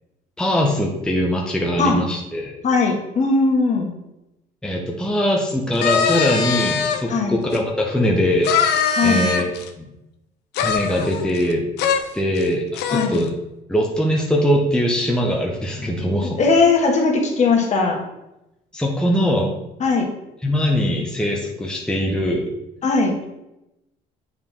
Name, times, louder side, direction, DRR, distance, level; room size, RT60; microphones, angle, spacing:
voice 1, 0.4-2.5 4.6-8.5 9.0-9.8 10.6-11.6 12.1-13.3 13.7-16.4 18.7-19.5 20.4-22.5, equal, 5° left, -2 dB, 1.0 m, -21 dB
voice 2, 2.6-3.9 7.1-7.4 8.9-9.3 12.9-13.2 16.2-18.0 19.8-20.1 22.8-23.2, left 4 dB, 45° left, 0 dB, 1.7 m, -18 dB
sound 1, 5.7-7.0 7.5-7.6 8.4-9.7 10.5-11.5 11.8-12.0 12.4-12.5 12.7-13.2, left 6 dB, 80° left, 0.8 m, -21 dB
7.7 x 4.5 x 3.7 m, 0.90 s
cardioid pair, 110°, 17 cm